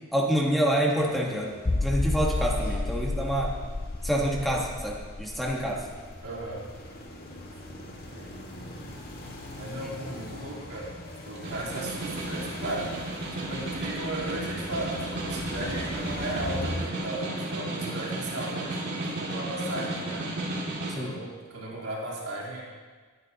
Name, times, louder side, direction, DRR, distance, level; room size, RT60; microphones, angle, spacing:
voice 1, 0.1-1.5 1.8-3.5 4.0-5.8 21.0-21.1, right 1 dB, ahead, -2 dB, 1.4 m, -27 dB
sound 1, 0.9-16.8, left 1 dB, 45° left, 1.9 m, -42 dB
sound 2, 1.7-7.1 7.4-7.5 8.0-8.1, left 2 dB, 20° left, 0.3 m, -31 dB
voice 2, 6.2-6.7 7.6-8.8 9.5-13.1 13.5-20.3 20.9-22.6, right 1 dB, 85° right, -5 dB, 3.6 m, -36 dB
Snare drum, 11.2-21.0, right 1 dB, 50° right, 2.4 m, -34 dB
21.0 x 9.6 x 2.9 m, 1.5 s
head